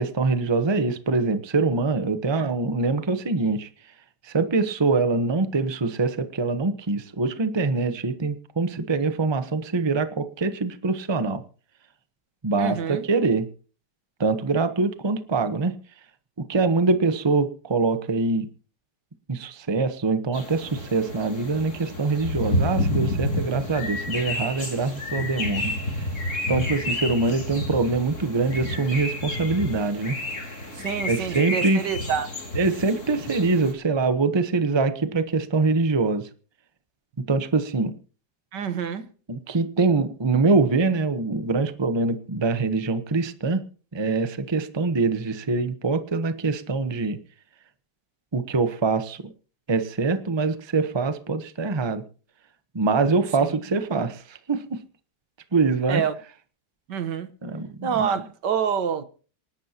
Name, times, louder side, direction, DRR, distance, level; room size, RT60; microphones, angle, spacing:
voice 1, 0.0-3.7 4.2-11.4 12.4-13.5 14.2-15.7 16.4-18.5 19.3-26.1 26.5-30.2 31.1-31.8 32.5-36.3 37.3-37.9 39.3-43.6 43.9-47.2 48.3-49.3 49.7-52.0 52.7-54.8 55.5-56.0 57.4-58.1, right 3 dB, 20° right, 0.8 m, -24 dB
voice 2, 12.6-13.0 30.7-32.3 38.5-39.1 53.4-53.6 55.9-56.1 56.9-57.3 57.8-59.0, right 7 dB, 80° right, 1.8 m, -27 dB
sound 1, 20.3-33.7, left 1 dB, 45° left, 4.1 m, -30 dB
27.5 x 11.5 x 2.9 m
omnidirectional pair, 1.9 m